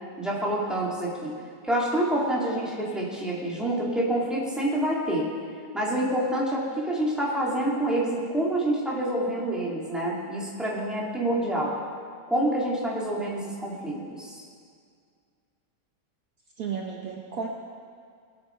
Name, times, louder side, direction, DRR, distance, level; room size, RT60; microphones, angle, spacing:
voice 1, 0.2-1.3 1.6-5.3 5.7-11.8 12.3-14.4, right 1 dB, ahead, -5 dB, 2.5 m, -27 dB
voice 2, 16.6-17.5, right 6 dB, 60° right, -1 dB, 1.4 m, -33 dB
20.5 x 8.0 x 4.6 m, 2.1 s
omnidirectional pair, 1.9 m